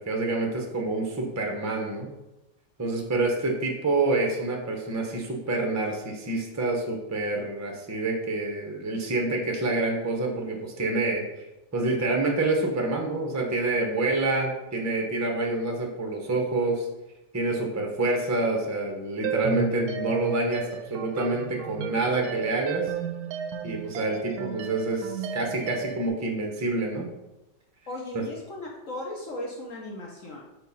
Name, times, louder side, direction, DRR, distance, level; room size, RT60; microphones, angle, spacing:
voice 1, 0.0-2.1 2.8-11.2 11.7-16.9 17.3-22.9 23.6-27.1 28.1-28.2, right 2 dB, 20° right, 1 dB, 0.4 m, -27 dB
sound 1, 19.2-26.1, right 8 dB, 70° right, 1.0 m, -34 dB
voice 2, 27.9-30.4, left 1 dB, 55° left, -2 dB, 1.1 m, -37 dB
4.6 x 4.4 x 5.5 m, 0.98 s
omnidirectional pair, 1.9 m